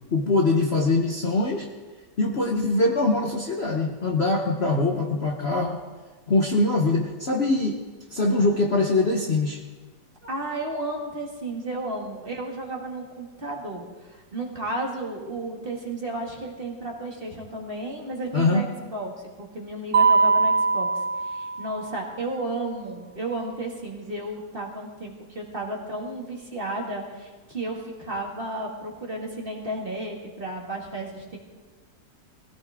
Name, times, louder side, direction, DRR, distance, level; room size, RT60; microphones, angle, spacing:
voice 1, 0.1-1.7 2.2-5.8 6.3-7.8 8.1-9.6 18.3-18.7, left 2 dB, 40° left, 1 dB, 1.2 m, -23 dB
voice 2, 10.2-19.1 19.4-31.4, right 2 dB, 30° right, -1 dB, 2.3 m, -33 dB
Mallet percussion, 19.9-22.0, right 4 dB, 55° right, 0.6 m, -21 dB
21.0 x 16.0 x 3.7 m, 1.3 s
omnidirectional pair, 2.0 m